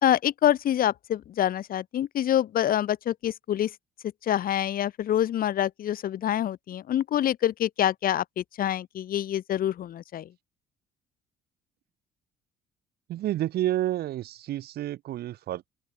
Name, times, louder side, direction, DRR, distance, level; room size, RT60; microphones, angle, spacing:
voice 1, 0.0-3.8 4.2-10.3, left 11 dB, 60° left, 3.9 m, -26 dB
voice 2, 13.1-15.7, right 13 dB, 70° right, 4.5 m, -29 dB
open air
cardioid pair, 110°, 17 cm